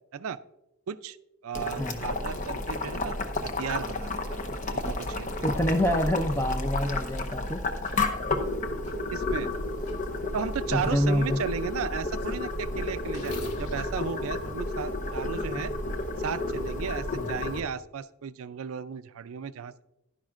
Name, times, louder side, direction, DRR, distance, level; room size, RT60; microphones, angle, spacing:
voice 1, 0.9-1.2 1.4-3.2 3.6-4.4 4.7-5.3 9.1-9.5 10.3-15.7 16.2-19.8, right 6 dB, 70° right, 15 dB, 0.4 m, -35 dB
Boiling, 1.5-17.6, left 2 dB, 35° left, 0.8 m, -31 dB
sound 1, 4.8-5.0 5.8-5.9 6.8-7.0 7.8-8.0 8.8-9.0 9.8-10.0 10.8-11.0 11.5-15.4, left 1 dB, 85° left, 1.5 m, -47 dB
voice 2, 5.4-7.6 10.7-11.4 17.2-17.3, equal, 10° left, 8 dB, 0.5 m, -27 dB
11.5 x 10.5 x 2.5 m, 0.93 s
head